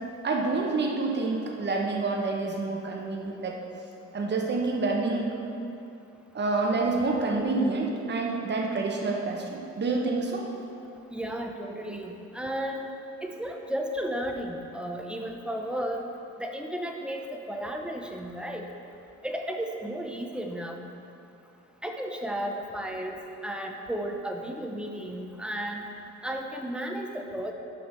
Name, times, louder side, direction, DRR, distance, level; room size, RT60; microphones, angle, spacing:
voice 1, 0.2-3.6 4.1-5.4 6.3-10.5, right 3 dB, 35° right, 0 dB, 1.1 m, -28 dB
voice 2, 11.1-12.9 13.2-16.0 16.4-18.6 19.2-20.8 21.8-23.1 23.4-25.8 26.2-27.5, equal, 5° right, 2 dB, 0.8 m, -33 dB
6.4 x 5.1 x 6.1 m, 2.7 s
cardioid pair, 90°, 30 cm